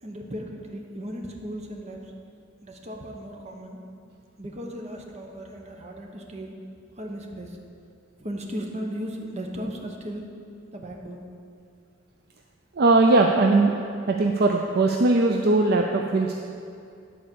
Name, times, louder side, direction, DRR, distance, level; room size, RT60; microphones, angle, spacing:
voice 1, 0.0-2.1 2.6-3.8 4.4-6.5 7.0-7.6 8.2-10.3 10.7-11.2, equal, 35° right, 1 dB, 1.0 m, -36 dB
voice 2, 12.8-13.8 14.1-16.3, right 2 dB, 55° right, 2 dB, 0.5 m, -20 dB
10.5 x 4.3 x 6.8 m, 2.5 s
head